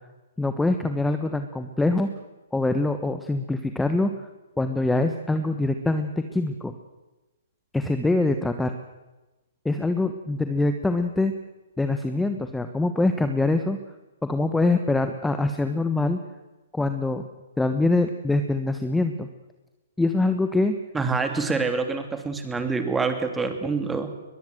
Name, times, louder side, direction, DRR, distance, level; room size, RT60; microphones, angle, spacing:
voice 1, 0.4-2.1 2.5-4.1 4.6-6.7 7.7-8.7 9.6-11.3 11.8-13.8 14.2-16.2 16.7-17.2 17.6-19.3 20.0-20.7, left 2 dB, 5° left, 8 dB, 1.3 m, -24 dB
voice 2, 20.9-24.1, right 4 dB, 10° right, 7 dB, 3.0 m, -26 dB
22.0 x 22.0 x 7.9 m, 1.1 s
figure-of-eight pair, 120°, 0 cm